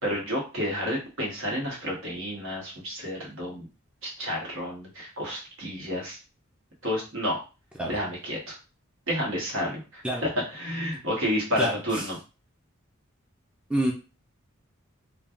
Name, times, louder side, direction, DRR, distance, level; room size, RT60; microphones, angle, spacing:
voice 1, 0.0-3.7 4.0-6.2 6.8-7.4 7.9-8.5 9.1-12.2, equal, 70° right, -2 dB, 1.2 m, -30 dB
voice 2, 11.6-12.0 13.7-13.9, right 1 dB, 5° right, -2 dB, 0.4 m, -27 dB
3.2 x 2.2 x 2.4 m, 0.31 s
head